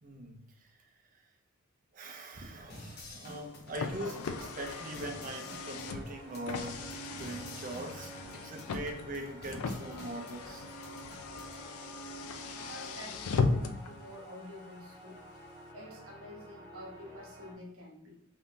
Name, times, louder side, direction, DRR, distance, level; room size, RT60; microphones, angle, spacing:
voice 1, 0.0-0.7 1.9-10.6, right 1 dB, 35° right, 0.5 m, -42 dB
sound 1, 2.7-11.7, left 1 dB, 45° left, 0.7 m, -51 dB
Car, 3.3-13.9, left 4 dB, 75° left, 0.3 m, -37 dB
sound 2, 4.2-17.5, right 2 dB, 10° left, 1.1 m, -50 dB
voice 2, 12.6-15.2 15.7-18.2, equal, 75° right, 1.0 m, -48 dB
3.6 x 2.7 x 2.5 m
head